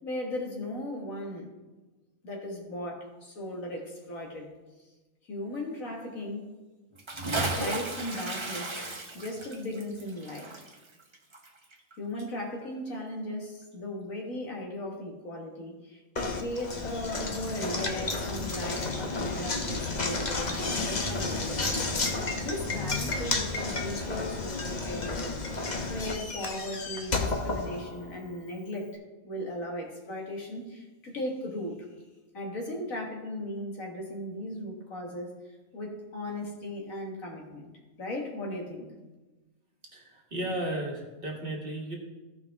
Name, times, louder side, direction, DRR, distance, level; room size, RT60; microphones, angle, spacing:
voice 1, 0.0-1.5 2.2-4.5 5.3-6.5 7.5-10.6 12.0-21.8 22.4-25.4 25.8-28.9 29.2-31.9 32.3-35.4 35.7-37.7 38.0-38.9, left 1 dB, 65° left, 0 dB, 2.0 m, -37 dB
Bathtub (filling or washing) / Splash splatter, 6.9-11.9 12.2-12.3, right 2 dB, 25° right, 0.8 m, -34 dB
Knock, 16.2-28.3, left 3 dB, 35° left, 0.9 m, -32 dB
voice 2, 39.9-42.0, right 1 dB, 40° right, 0 dB, 1.6 m, -34 dB
15.0 x 5.4 x 3.5 m, 1.2 s
omnidirectional pair, 1.5 m